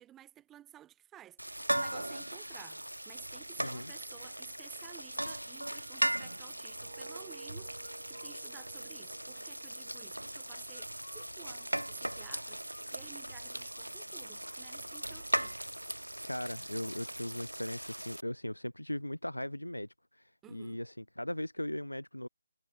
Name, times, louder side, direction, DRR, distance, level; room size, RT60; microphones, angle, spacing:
voice 1, 0.0-15.6 20.4-20.8, right 12 dB, 10° right, 3.9 m, -55 dB
sound 1, 1.4-18.2, right 1 dB, 90° right, 1.4 m, -38 dB
voice 2, 3.6-3.9 16.2-22.3, left 1 dB, 90° left, 1.1 m, -39 dB
sound 2, 5.9-11.0 11.3-11.6, right 5 dB, 50° right, 5.2 m, -55 dB
sound 3, 7.8-8.4 10.7-13.4 13.7-13.9 14.1-15.1, left 2 dB, 75° left, 5.0 m, -58 dB
figure-of-eight pair, 150°, 0 cm